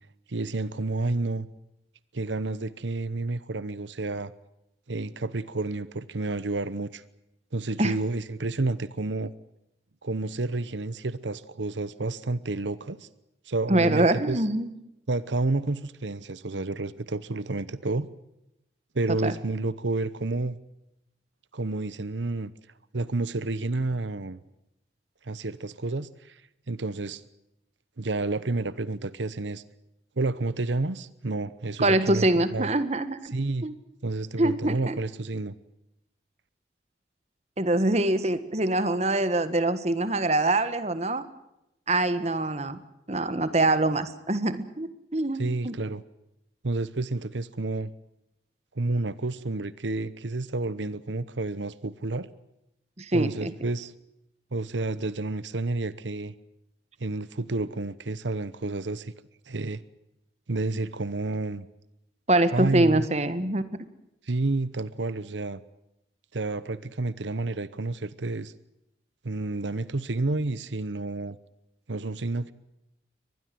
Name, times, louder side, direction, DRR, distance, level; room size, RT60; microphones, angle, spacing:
voice 1, 0.3-1.5 2.1-4.3 4.9-7.0 7.5-9.3 10.0-13.1 13.5-14.4 15.1-18.1 18.9-20.6 21.5-22.5 22.9-24.4 25.2-26.4 26.7-27.2 28.0-29.6 30.2-32.7 33.3-33.7 34.0-35.5 45.4-46.0 46.6-47.9 48.7-52.3 53.1-53.9 54.5-56.3 57.0-59.1 59.5-59.8 60.5-61.7 62.5-63.1 64.2-65.6 66.3-68.5 69.2-71.4 71.9-72.5, right 2 dB, 90° right, 16 dB, 0.9 m, -30 dB
voice 2, 13.7-14.7 19.2-19.3 31.8-33.3 33.6-33.7 34.4-35.0 37.6-41.2 41.9-42.8 43.1-45.7 53.0-53.5 62.3-63.6, right 2 dB, 35° right, 12 dB, 1.6 m, -24 dB
23.5 x 20.0 x 7.8 m, 0.86 s
head